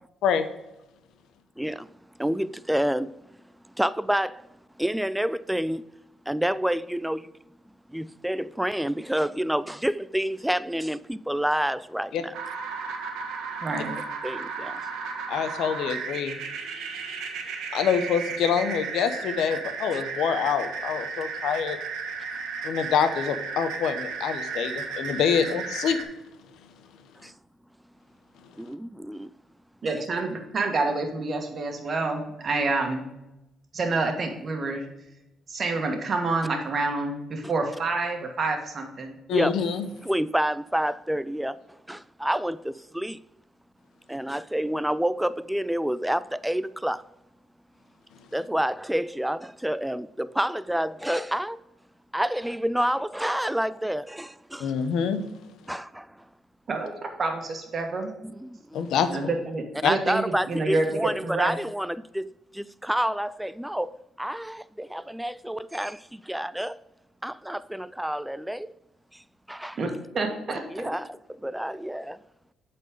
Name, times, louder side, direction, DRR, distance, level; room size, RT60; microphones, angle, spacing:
voice 1, 1.6-1.9 2.2-3.2 3.8-4.5 4.8-5.8 6.3-7.3 7.9-12.3 14.2-14.8 19.9-20.0 27.2-27.3 28.6-29.3 29.9-30.0 37.4-37.5 39.3-39.6 40.0-43.2 44.1-47.0 48.3-51.6 52.1-54.7 55.7-56.2 58.2-58.8 59.7-66.8 67.2-68.7 69.1-69.2 69.5-69.8 70.5-72.2, equal, 5° right, 0.3 m, -28 dB
sound 1, 12.3-26.0, right 5 dB, 90° right, 1.3 m, -34 dB
voice 2, 13.6-14.0 29.8-33.1 33.7-34.9 35.5-39.2 56.7-56.9 57.2-58.1 59.1-61.6 69.8-70.6, right 3 dB, 45° right, 1.6 m, -28 dB
voice 3, 15.3-16.4 17.7-21.8 22.6-26.0 39.3-39.9 54.6-55.2 58.7-59.3 59.8-59.9, left 7 dB, 80° left, 0.8 m, -26 dB
8.1 x 4.4 x 5.2 m
cardioid pair, 90°, 0 cm